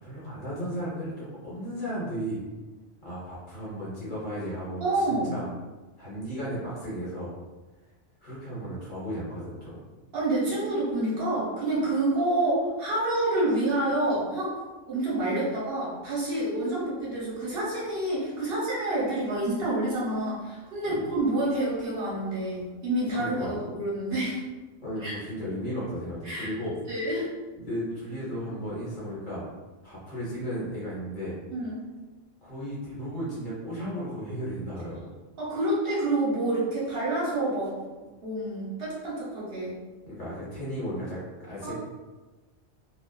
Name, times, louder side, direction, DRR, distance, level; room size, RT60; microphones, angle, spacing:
voice 1, 0.0-2.4 3.0-5.5 6.0-7.3 8.2-9.8 20.9-21.0 23.2-23.6 24.8-26.8 27.6-29.4 29.8-31.3 32.4-35.1 40.1-41.7, equal, 50° left, -8 dB, 1.0 m, -35 dB
voice 2, 4.8-5.3 10.1-14.6 14.9-24.4 25.0-25.1 26.2-26.5 26.9-27.3 31.5-31.8 35.4-37.7 38.2-39.8 41.6-41.7, right 1 dB, 60° right, -7 dB, 1.0 m, -28 dB
2.4 x 2.3 x 2.2 m, 1.2 s
omnidirectional pair, 1.2 m